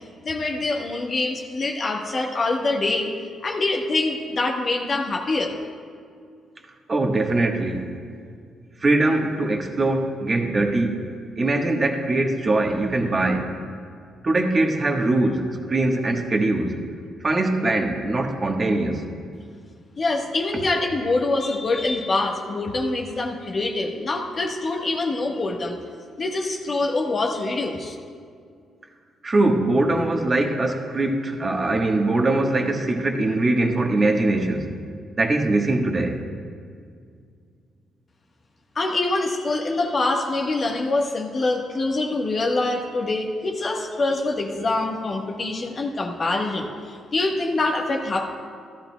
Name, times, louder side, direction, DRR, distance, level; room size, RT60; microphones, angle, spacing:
voice 1, 0.2-3.2 3.4-5.5 20.0-25.8 26.2-28.0 38.7-48.3, left 2 dB, 40° left, 1 dB, 1.2 m, -25 dB
voice 2, 6.9-7.9 8.8-11.0 11.4-13.6 14.2-16.8 17.2-19.0 29.2-34.7 35.2-36.2, right 2 dB, 30° right, 3 dB, 1.3 m, -22 dB
15.0 x 13.0 x 2.3 m, 2.2 s
cardioid pair, 90°, 0 cm